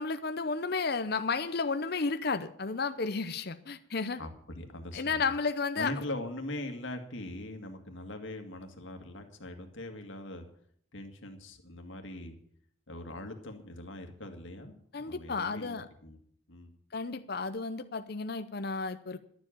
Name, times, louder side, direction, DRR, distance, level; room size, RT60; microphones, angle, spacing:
voice 1, 0.0-4.2 4.9-5.9 14.9-15.9 16.9-19.2, left 4 dB, 55° left, 10 dB, 0.7 m, -32 dB
voice 2, 4.2-5.3 5.8-10.5 10.9-12.4 12.9-15.8 16.0-16.2 16.5-16.7, left 1 dB, 75° left, 5 dB, 2.0 m, -41 dB
12.0 x 7.4 x 8.8 m, 0.63 s
head